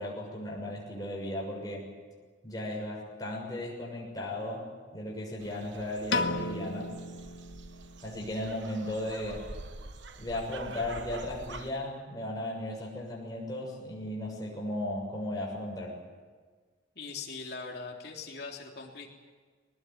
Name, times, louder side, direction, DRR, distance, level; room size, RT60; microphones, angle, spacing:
voice 1, 0.0-1.9 2.4-4.7 4.9-6.9 8.0-9.5 10.2-16.0, left 1 dB, 20° left, -3 dB, 6.7 m, -36 dB
sound 1, 5.4-11.7, right 3 dB, 80° right, 1.2 m, -46 dB
Piano, 6.1-8.4, left 3 dB, 75° left, 1.2 m, -34 dB
voice 2, 16.9-19.1, left 4 dB, 55° left, 0 dB, 3.4 m, -41 dB
22.0 x 19.5 x 9.4 m, 1.5 s
head